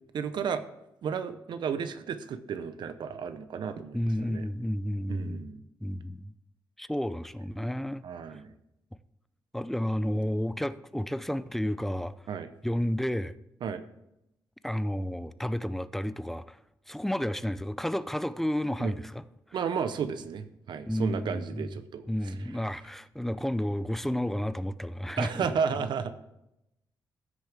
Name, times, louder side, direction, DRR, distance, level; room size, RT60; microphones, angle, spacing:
voice 1, 0.1-0.6 1.0-4.4 5.1-5.6 8.0-8.5 12.3-12.5 13.6-13.8 18.8-18.9 19.5-22.0 25.2-26.2, right 6 dB, 70° right, 0.7 m, -33 dB
voice 2, 3.9-5.5 5.8-6.3 6.8-8.0 9.5-12.1 12.6-13.3 14.6-16.6 16.9-19.2 20.9-21.7 22.1-25.5, equal, 5° left, 0.3 m, -31 dB
14.5 x 6.4 x 3.4 m
wide cardioid pair, 125°, 8 cm